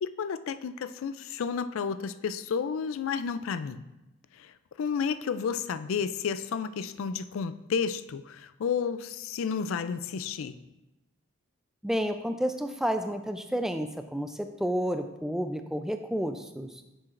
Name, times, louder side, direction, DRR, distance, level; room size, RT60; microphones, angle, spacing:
voice 1, 0.0-3.8 4.3-10.6, left 6 dB, 75° left, 13 dB, 0.4 m, -31 dB
voice 2, 11.8-16.8, equal, ahead, 7 dB, 0.3 m, -31 dB
9.9 x 7.5 x 2.5 m, 0.98 s
head